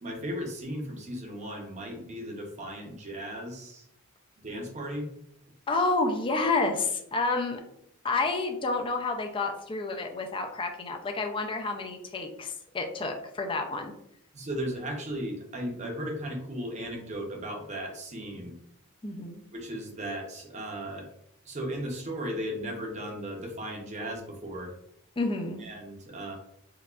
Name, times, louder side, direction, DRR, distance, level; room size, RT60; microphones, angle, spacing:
voice 1, 0.0-3.9 4.4-5.1 14.3-18.5 19.5-21.1 21.4-24.7 25.6-26.4, equal, 30° right, 1 dB, 0.6 m, -36 dB
voice 2, 5.7-7.6 8.0-13.9 19.0-19.4 25.2-25.6, left 3 dB, 25° left, 4 dB, 0.4 m, -29 dB
4.6 x 2.3 x 2.4 m, 0.74 s
head